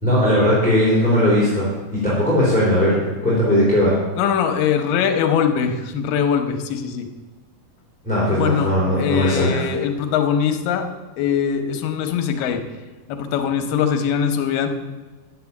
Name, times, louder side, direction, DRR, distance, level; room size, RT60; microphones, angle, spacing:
voice 1, 0.0-3.9 8.0-9.6, equal, ahead, -8 dB, 3.1 m, -18 dB
voice 2, 4.2-7.1 8.3-10.9 11.2-12.6 13.1-14.7, left 7 dB, 85° left, 6 dB, 2.6 m, -22 dB
9.6 x 7.7 x 7.1 m, 1.3 s
omnidirectional pair, 3.9 m